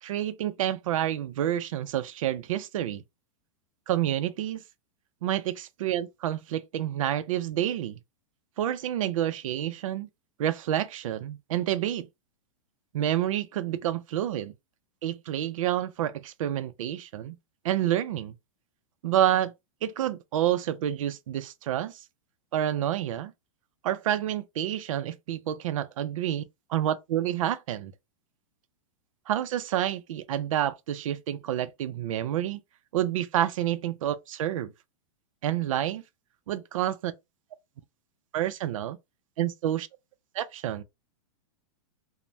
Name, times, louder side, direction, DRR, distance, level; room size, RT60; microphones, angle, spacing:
voice 1, 0.0-3.0 3.9-4.6 5.2-8.0 8.6-10.1 10.4-12.1 12.9-14.5 15.0-17.4 17.6-18.3 19.0-19.5 19.8-22.0 22.5-23.3 23.8-26.4 26.7-27.9 29.3-32.6 32.9-34.7 35.4-36.0 36.5-37.1 38.3-39.0 39.4-39.9 40.3-40.8, right 11 dB, 75° right, 0.4 m, -28 dB
3.2 x 2.1 x 2.6 m
supercardioid pair, 165°, 17 cm